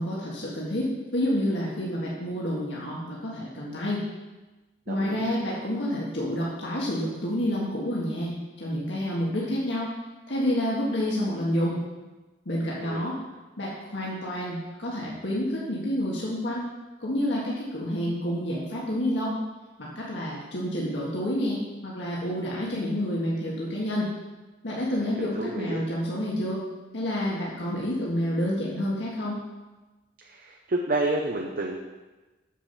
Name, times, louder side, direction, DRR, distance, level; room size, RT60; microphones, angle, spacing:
voice 1, 0.0-4.0 4.9-9.9 10.3-11.8 12.5-13.2 13.6-16.7 17.0-19.4 19.8-24.1 24.6-26.6 26.9-29.4, equal, 75° left, -5 dB, 1.8 m, -29 dB
voice 2, 4.9-5.3 12.8-13.1 25.2-25.8 30.2-31.8, right 2 dB, 50° right, 0 dB, 0.8 m, -30 dB
7.4 x 7.2 x 5.7 m, 1.2 s
head